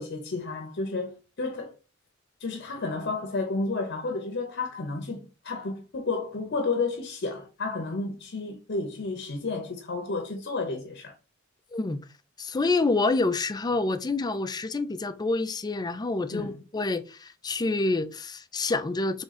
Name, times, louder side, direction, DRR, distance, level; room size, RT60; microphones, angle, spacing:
voice 1, 0.0-1.7 2.4-11.1 16.3-16.5, left 3 dB, 55° left, 0.7 m, -31 dB
voice 2, 12.4-19.2, left 3 dB, 20° left, 0.4 m, -27 dB
3.7 x 3.5 x 4.1 m
head